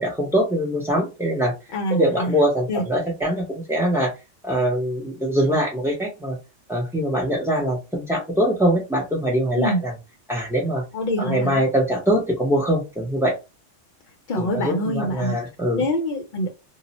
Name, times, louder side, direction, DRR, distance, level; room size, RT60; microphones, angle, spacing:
voice 1, 0.0-1.5 1.9-4.1 4.4-6.4 6.7-9.9 10.3-10.8 11.2-13.4 14.4-15.8, equal, 5° right, 0.3 m, -23 dB
voice 2, 1.7-2.4 2.7-2.8 9.6-9.8 10.9-11.6 14.3-15.4 15.7-16.5, equal, 60° left, 0.6 m, -25 dB
2.3 x 2.0 x 3.9 m
omnidirectional pair, 1.3 m